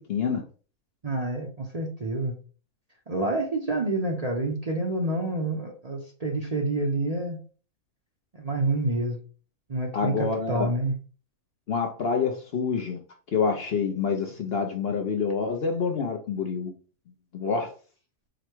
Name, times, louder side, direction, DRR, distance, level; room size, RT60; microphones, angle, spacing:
voice 1, 0.1-0.4 9.9-10.7 11.7-13.0 13.3-16.7 17.3-17.7, left 5 dB, 55° left, 0.8 m, -27 dB
voice 2, 1.0-2.4 3.1-7.4 8.4-9.2 9.7-10.9, right 2 dB, 35° right, 0.7 m, -28 dB
5.0 x 2.2 x 4.4 m
omnidirectional pair, 1.5 m